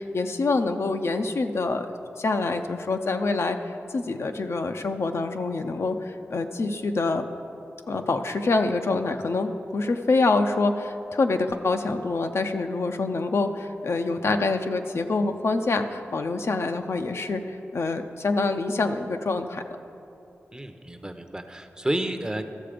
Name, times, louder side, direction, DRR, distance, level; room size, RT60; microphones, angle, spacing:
voice 1, 0.0-1.9 2.2-7.2 7.9-19.6, left 3 dB, 70° left, 6 dB, 0.6 m, -26 dB
voice 2, 20.5-22.5, right 1 dB, 15° right, 7 dB, 0.7 m, -30 dB
13.5 x 6.7 x 5.0 m, 2.8 s
cardioid pair, 55°, 5 cm